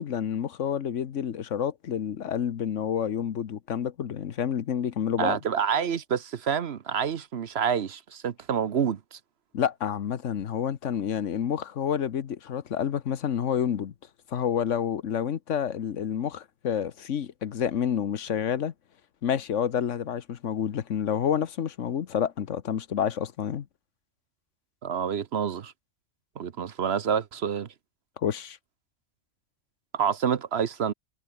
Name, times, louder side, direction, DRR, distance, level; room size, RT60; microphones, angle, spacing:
voice 1, 0.0-5.4 9.5-13.9 14.3-18.7 19.2-23.7 28.2-28.6, left 8 dB, 75° left, 1.3 m, -29 dB
voice 2, 5.2-9.2 24.8-25.7 26.4-27.7 29.9-30.9, right 7 dB, 60° right, 1.1 m, -28 dB
omnidirectional pair, 1.3 m